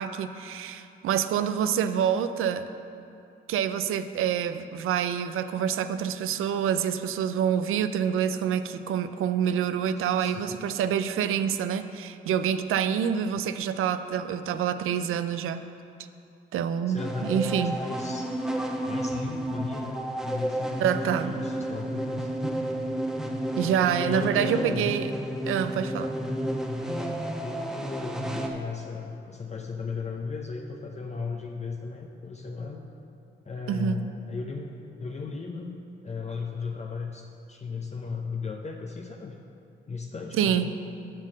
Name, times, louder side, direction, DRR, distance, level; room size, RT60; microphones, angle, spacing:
voice 1, 0.0-2.7 3.5-15.6 16.5-17.8 20.8-21.3 23.6-25.1 25.5-26.1 33.7-34.0 40.3-40.7, right 8 dB, 80° right, 11 dB, 0.5 m, -27 dB
voice 2, 10.2-10.6 16.9-18.3 18.8-22.3 24.0-24.9 26.2-26.5 27.4-32.8 33.4-34.7 35.0-35.8 36.0-39.4 39.9-40.7, left 4 dB, 30° left, 2 dB, 0.7 m, -36 dB
sound 1, 17.0-28.5, right 1 dB, ahead, 1.1 m, -31 dB
7.4 x 6.5 x 6.3 m, 2.7 s
cardioid pair, 65°, 21 cm